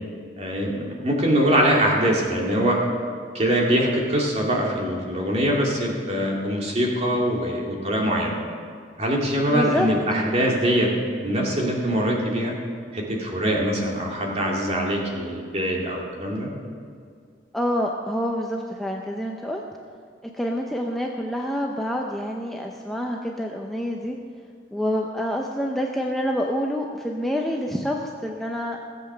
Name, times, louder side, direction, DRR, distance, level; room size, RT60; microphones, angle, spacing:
voice 1, 0.4-2.8 3.3-8.4 9.0-10.9 11.2-12.5 12.9-16.5, equal, 35° right, -1 dB, 2.4 m, -23 dB
voice 2, 9.5-9.9 17.5-19.6 20.4-24.2 24.7-28.8, equal, ahead, 0 dB, 0.7 m, -27 dB
16.5 x 8.0 x 6.7 m, 2.1 s
head